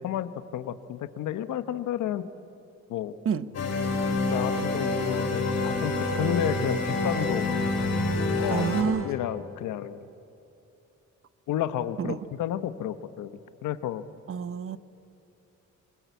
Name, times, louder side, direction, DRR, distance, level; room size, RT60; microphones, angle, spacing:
voice 1, 0.0-2.2 2.9-3.1 4.3-7.5 8.4-10.0 11.5-13.3 13.6-14.0, left 11 dB, 80° left, 12 dB, 1.1 m, -31 dB
sound 1, 3.5-8.8, left 2 dB, 55° left, 4.8 m, -27 dB
voice 2, 8.5-9.1 12.0-12.2 14.3-14.8, right 7 dB, 45° right, 14 dB, 0.9 m, -28 dB
26.0 x 20.0 x 8.3 m, 2.8 s
cardioid pair, 90°, 30 cm